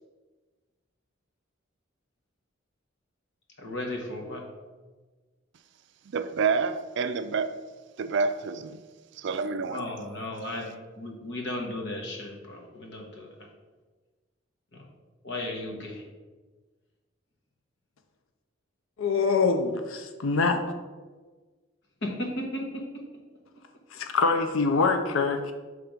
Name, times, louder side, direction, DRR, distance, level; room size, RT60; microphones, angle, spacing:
voice 1, 3.6-4.4 9.6-10.6 11.0-13.3 14.7-14.8 15.2-16.0 22.0-22.6, left 1 dB, 60° left, 1.3 m, -35 dB
voice 2, 6.1-7.6 8.0-8.8 9.2-9.8, right 5 dB, 60° right, 0.4 m, -28 dB
voice 3, 19.0-20.6 23.9-25.5, left 4 dB, 80° left, 0.5 m, -24 dB
5.9 x 3.5 x 5.1 m
head